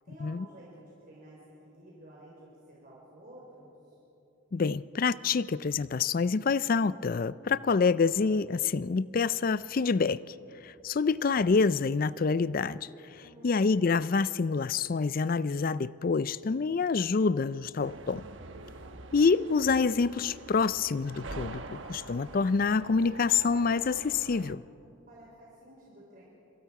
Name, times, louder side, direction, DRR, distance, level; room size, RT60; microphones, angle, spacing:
voice 1, 0.0-4.0 13.2-13.5 25.1-26.2, right 1 dB, 45° right, 4.1 m, -52 dB
voice 2, 4.5-10.3 10.6-18.3 19.1-24.6, left 4 dB, 45° left, 0.4 m, -27 dB
sound 1, 17.8-24.5, right 3 dB, 70° right, 1.1 m, -45 dB
27.5 x 25.0 x 4.8 m
head